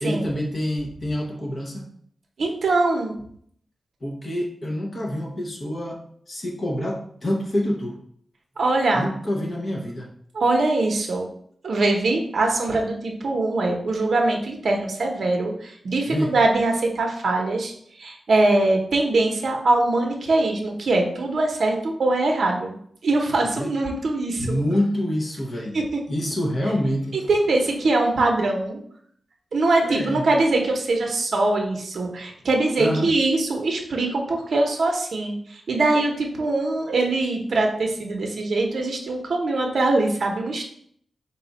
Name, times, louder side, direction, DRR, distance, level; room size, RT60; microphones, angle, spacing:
voice 1, 0.0-1.9 4.0-6.0 6.3-8.0 8.9-10.1 16.1-16.3 23.6-23.7 24.4-25.8 26.1-27.2 29.8-30.2 32.8-33.1, equal, 35° left, -1 dB, 0.8 m, -26 dB
voice 2, 2.4-3.1 8.6-9.1 10.3-11.3 11.6-17.7 18.0-22.7 23.0-24.6 25.7-26.0 27.1-28.8 29.5-40.7, right 2 dB, 60° right, 1 dB, 0.7 m, -22 dB
4.1 x 2.3 x 4.0 m, 0.64 s
wide cardioid pair, 160°, 0 cm